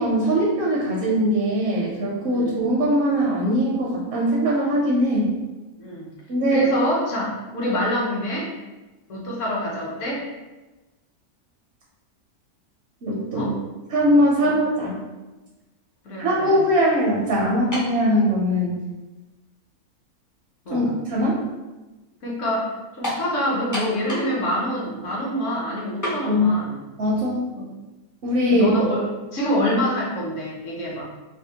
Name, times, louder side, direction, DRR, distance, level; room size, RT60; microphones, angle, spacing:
voice 1, 0.0-5.3 6.3-6.7 13.0-13.5 13.9-15.0 16.2-18.7 20.7-21.4 26.3-26.5 27.0-27.4 28.2-28.7, equal, 60° right, -4 dB, 0.7 m, -21 dB
voice 2, 6.5-8.5 9.1-10.2 13.3-13.5 14.4-14.5 16.0-16.6 20.7-20.9 22.2-26.7 27.5-27.7 28.5-29.1 29.3-31.0, equal, 60° left, -4 dB, 1.1 m, -26 dB
sound 1, 17.7-18.0 18.9-19.0 23.0-23.3 23.7-24.4 24.7-24.8 26.0-26.2, equal, 30° left, 0.3 m, -28 dB
3.4 x 2.2 x 2.7 m, 1.1 s
omnidirectional pair, 1.6 m